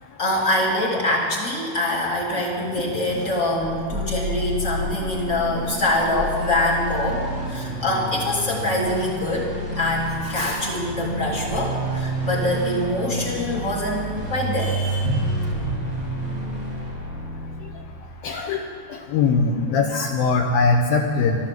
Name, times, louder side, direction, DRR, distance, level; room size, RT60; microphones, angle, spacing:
voice 1, 0.2-7.2 7.5-15.3 15.6-15.7, left 1 dB, 25° left, -3 dB, 1.7 m, -24 dB
sound 1, 3.6-18.2, right 1 dB, 20° right, 1.0 m, -30 dB
voice 2, 18.2-18.6 19.1-21.4, left 4 dB, 75° left, 2 dB, 2.2 m, -20 dB
13.0 x 13.0 x 7.5 m, 2.1 s
omnidirectional pair, 5.1 m